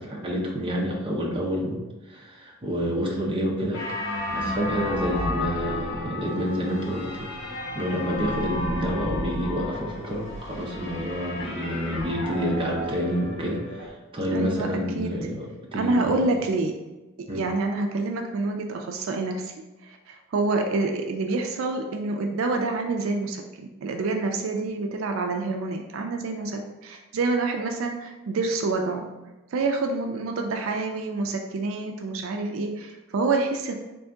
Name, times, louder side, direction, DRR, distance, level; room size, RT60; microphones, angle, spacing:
voice 1, 0.0-1.8 2.1-3.8 4.3-7.3 7.7-16.2 17.3-17.4, equal, 25° right, -2 dB, 0.7 m, -28 dB
sound 1, 3.7-13.9, left 1 dB, 60° left, 0.8 m, -32 dB
voice 2, 14.3-14.7 15.0-15.1 15.8-16.7 17.3-19.5 19.8-29.1 29.5-33.7, right 3 dB, 70° right, 3 dB, 0.4 m, -27 dB
3.5 x 2.7 x 3.4 m, 1.1 s
head